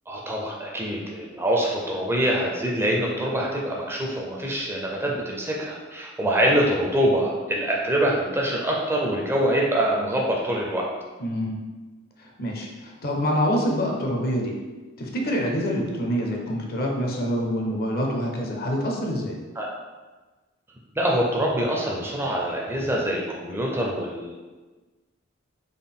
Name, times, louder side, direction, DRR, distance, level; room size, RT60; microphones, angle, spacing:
voice 1, 0.1-10.9 19.6-19.7 21.0-24.3, right 1 dB, 10° right, -2 dB, 0.4 m, -25 dB
voice 2, 11.2-11.6 12.2-14.5 15.0-19.4, equal, 50° left, 0 dB, 0.6 m, -26 dB
3.7 x 2.2 x 3.6 m, 1.3 s
head